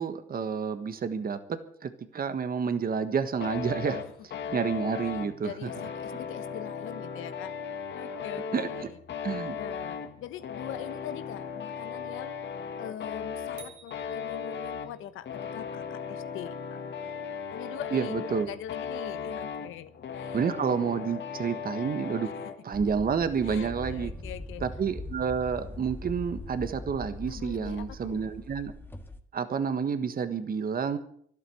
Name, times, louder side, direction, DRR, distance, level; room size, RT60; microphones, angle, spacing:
voice 1, 0.0-5.7 8.5-8.7 9.2-9.6 17.9-18.5 20.3-22.3 22.6-24.1 24.6-28.7 29.3-31.0, right 6 dB, 50° right, 11 dB, 1.5 m, -30 dB
sound 1, 3.4-22.6, left 6 dB, 65° left, 2.1 m, -37 dB
voice 2, 5.4-7.5 7.9-12.4 12.8-20.4 23.4-24.6 27.3-28.3, left 11 dB, 85° left, 13 dB, 1.2 m, -43 dB
sound 2, 13.6-15.2, right 9 dB, 85° right, 2.0 m, -53 dB
sound 3, 22.7-29.2, left 2 dB, 10° left, 1.7 m, -41 dB
12.0 x 12.0 x 7.8 m, 0.64 s
cardioid pair, 90°, 20 cm